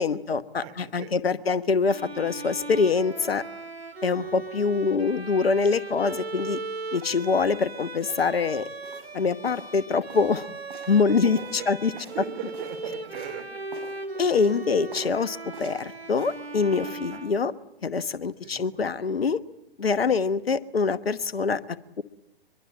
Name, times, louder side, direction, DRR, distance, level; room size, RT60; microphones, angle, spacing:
voice 1, 0.0-3.4 4.0-6.6 6.9-8.6 9.1-10.5 10.9-11.9 14.2-17.5 17.8-19.4 19.8-21.6 22.0-22.1, left 5 dB, 80° left, 14 dB, 1.2 m, -24 dB
voice 2, 0.6-1.3 4.2-4.4 11.1-13.6 17.1-17.3 18.4-18.7, right 10 dB, 40° right, 6 dB, 4.2 m, -39 dB
Bowed string instrument, 1.8-17.8, right 3 dB, 85° right, 2.2 m, -38 dB
sound 1, 8.8-9.1 9.4-9.7 10.1-10.4 10.7-11.0 11.3-12.8 13.1-13.4 13.7-14.0 14.3-14.6 14.9-15.2 15.5-16.4 16.7-17.0, right 3 dB, 60° right, 7.1 m, -46 dB
23.5 x 22.5 x 8.9 m, 0.81 s
figure-of-eight pair, 120°, 30 cm